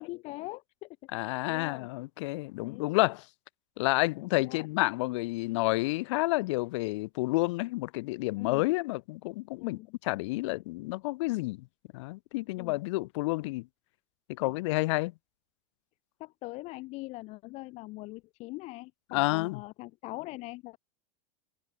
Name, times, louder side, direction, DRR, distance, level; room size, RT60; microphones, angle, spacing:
voice 1, 0.0-1.9 2.6-2.9 4.3-4.7 8.4-8.6 9.6-9.9 12.6-12.8 16.2-20.8, left 21 dB, 40° left, 1.0 m, -42 dB
voice 2, 1.1-3.2 3.8-11.6 11.9-13.7 14.4-15.1 19.1-19.6, left 22 dB, 65° left, 0.4 m, -30 dB
supercardioid pair, 150°, 16 cm